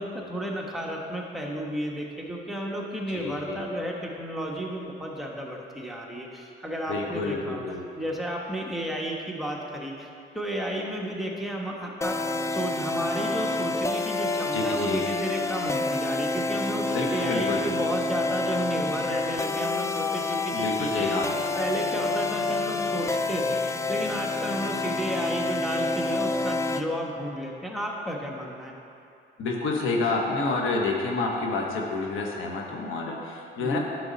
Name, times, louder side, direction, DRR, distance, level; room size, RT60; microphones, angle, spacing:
voice 1, 0.0-7.6 7.9-10.1 10.3-12.2 12.5-21.2 21.6-28.7 33.6-33.8, right 1 dB, ahead, -1 dB, 1.3 m, -32 dB
voice 2, 3.1-3.6 6.9-7.8 14.5-15.0 16.9-17.6 20.5-21.3 29.4-33.8, left 3 dB, 85° left, 0 dB, 1.3 m, -29 dB
sound 1, 12.0-26.8, left 3 dB, 15° left, 0.4 m, -28 dB
10.5 x 6.7 x 4.0 m, 2.7 s
cardioid pair, 90°, 20 cm